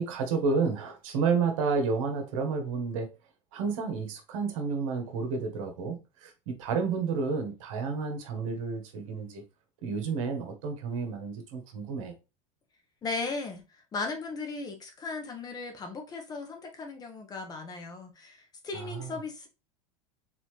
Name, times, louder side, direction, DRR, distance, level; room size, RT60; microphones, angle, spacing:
voice 1, 0.0-3.1 3.5-9.4 9.8-12.1 18.7-19.1, right 5 dB, 70° right, 1.4 m, -30 dB
voice 2, 13.0-13.6 13.9-19.5, left 4 dB, 20° left, 1.2 m, -37 dB
4.1 x 4.0 x 3.2 m
supercardioid pair, 135°, 17 cm